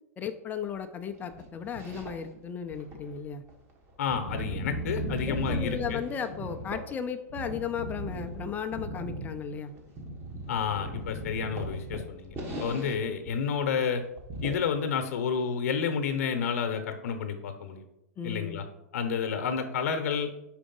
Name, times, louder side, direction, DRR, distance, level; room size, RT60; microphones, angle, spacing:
voice 1, 0.2-3.4 5.2-9.7 18.2-18.6, left 7 dB, 20° left, 7 dB, 0.5 m, -35 dB
sound 1, 1.2-2.4 2.7-6.9 7.3-13.0 13.3-13.4 13.7-13.8 14.2-14.5, right 1 dB, 25° right, 1.5 m, -37 dB
voice 2, 4.0-6.0 10.5-14.0 14.4-17.8 18.2-18.6 18.9-20.3, left 6 dB, 65° left, 7 dB, 0.9 m, -30 dB
5.0 x 4.7 x 5.3 m, 0.88 s
hypercardioid pair, 130°, 9 cm